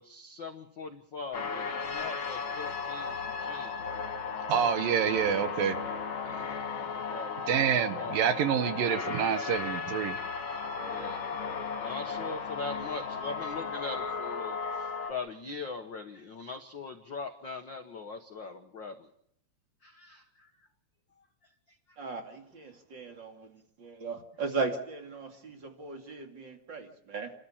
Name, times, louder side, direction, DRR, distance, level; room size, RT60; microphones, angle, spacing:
voice 1, 0.0-3.7 6.2-8.2 10.8-11.3 11.7-19.1 19.8-20.7, left 4 dB, 65° left, 6 dB, 1.1 m, -41 dB
sound 1, 1.3-15.1, left 5 dB, 40° left, 2.3 m, -35 dB
voice 2, 4.5-5.8 7.5-10.2, right 8 dB, 75° right, 10 dB, 2.8 m, -27 dB
voice 3, 22.0-23.5 23.8-27.3, right 4 dB, 35° right, 4 dB, 2.6 m, -37 dB
30.0 x 13.0 x 7.3 m, 0.70 s
omnidirectional pair, 4.2 m